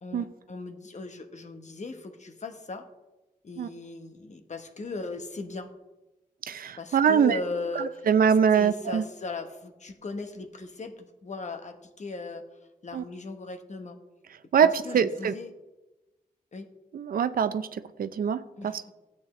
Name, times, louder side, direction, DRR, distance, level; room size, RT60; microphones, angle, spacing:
voice 1, 0.0-2.9 3.4-5.7 6.8-8.1 8.5-12.4 12.8-14.0 14.6-15.5 16.5-16.7 18.6-18.9, left 3 dB, 50° left, 6 dB, 1.2 m, -38 dB
voice 2, 6.5-7.4 8.1-9.0 12.9-13.0 14.5-14.7 14.9-15.3 16.9-18.9, right 7 dB, 75° right, 12 dB, 0.5 m, -23 dB
13.5 x 8.7 x 3.2 m, 1.1 s
cardioid pair, 65°, 15 cm